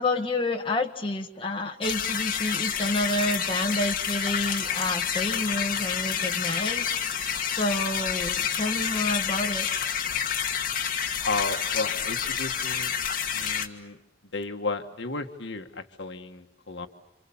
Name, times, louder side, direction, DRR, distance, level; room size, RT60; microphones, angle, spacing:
voice 1, 0.0-9.7, left 2 dB, 30° left, 2 dB, 1.8 m, -29 dB
sound 1, 1.8-13.7, left 8 dB, 50° left, 1.9 m, -29 dB
voice 2, 11.2-12.9 13.3-14.0 14.3-16.9, left 3 dB, 65° left, 6 dB, 1.6 m, -33 dB
29.5 x 27.0 x 7.2 m, 0.85 s
head